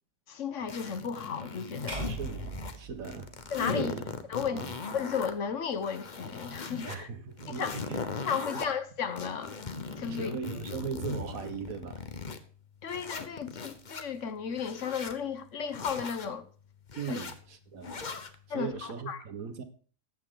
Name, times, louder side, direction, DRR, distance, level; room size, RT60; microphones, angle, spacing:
voice 1, 0.3-2.1 3.5-4.0 4.3-4.6 4.9-7.1 7.5-7.8 8.3-9.6 10.0-10.4 12.8-16.4 17.1-17.3 18.5-19.2, left 6 dB, 65° left, 1.3 m, -34 dB
sound 1, 0.7-2.8 3.0-5.3 5.7-7.0 7.4-8.7 9.2-12.4 12.9-14.0 14.5-15.2 15.7-16.3 16.9-17.3 17.8-18.3, left 4 dB, 35° left, 1.1 m, -39 dB
sound 2, 1.9-4.1, right 3 dB, 30° right, 4.8 m, -40 dB
voice 2, 2.1-3.4 3.7-4.1 4.4-4.7 6.9-8.1 8.5-8.6 10.1-12.0 17.0-17.9 18.5-19.6, right 6 dB, 85° right, 1.7 m, -39 dB
14.0 x 9.3 x 3.8 m
omnidirectional pair, 1.4 m